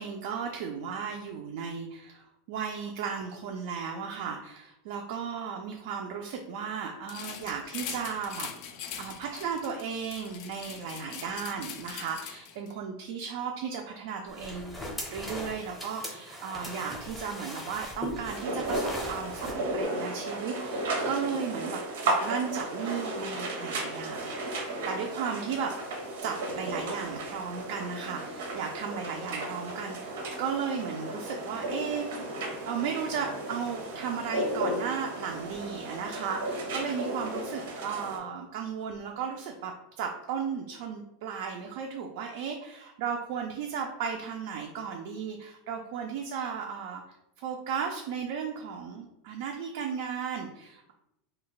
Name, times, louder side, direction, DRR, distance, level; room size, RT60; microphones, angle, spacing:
voice 1, 0.0-8.7 9.0-21.8 22.1-25.7 26.2-32.0 32.7-39.7 40.0-50.9, right 6 dB, 60° right, 2 dB, 0.3 m, -35 dB
sound 1, 7.1-12.7, left 8 dB, 45° left, 0.3 m, -42 dB
sound 2, 14.3-19.6, left 1 dB, 5° left, 0.6 m, -39 dB
sound 3, 18.3-38.2, right 2 dB, 85° right, 0.7 m, -34 dB
2.3 x 2.1 x 3.9 m, 0.87 s
supercardioid pair, 160°, 0 cm